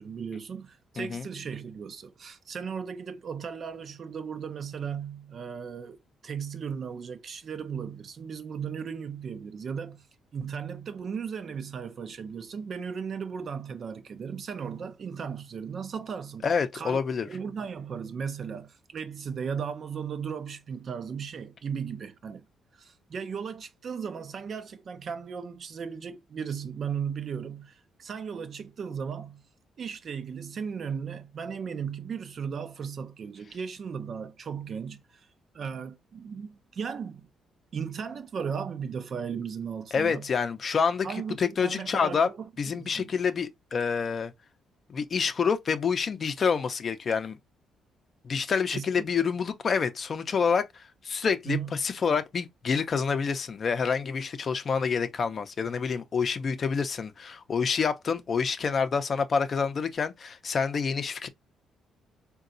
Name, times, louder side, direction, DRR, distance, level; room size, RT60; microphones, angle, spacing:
voice 1, 0.0-10.1 10.3-16.5 16.7-17.0 17.3-22.4 22.8-29.4 29.8-35.3 35.5-37.3 37.7-40.3 41.0-43.1 48.7-48.9 51.5-51.8, right 6 dB, 50° right, 0.5 m, -36 dB
voice 2, 16.4-17.3 39.9-41.1 41.4-42.3 42.6-44.3 44.9-47.4 48.2-61.3, left 6 dB, 45° left, 0.5 m, -27 dB
3.8 x 2.2 x 2.5 m
cardioid pair, 90°, 0 cm